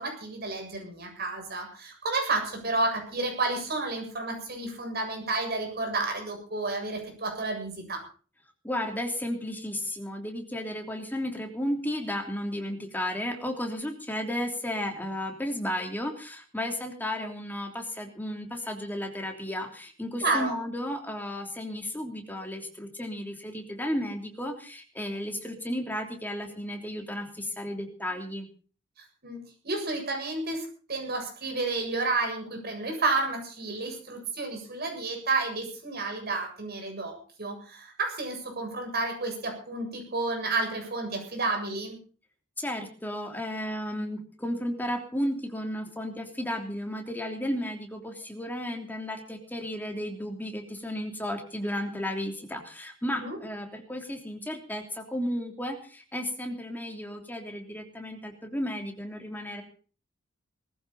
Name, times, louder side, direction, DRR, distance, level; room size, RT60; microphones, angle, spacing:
voice 1, 0.0-8.0 20.2-20.5 29.2-37.1 37.4-42.0 53.2-53.4, right 3 dB, 50° right, 3 dB, 7.5 m, -31 dB
voice 2, 8.6-28.5 42.6-59.6, left 1 dB, 10° left, 3 dB, 3.1 m, -33 dB
19.5 x 15.0 x 4.2 m, 0.39 s
head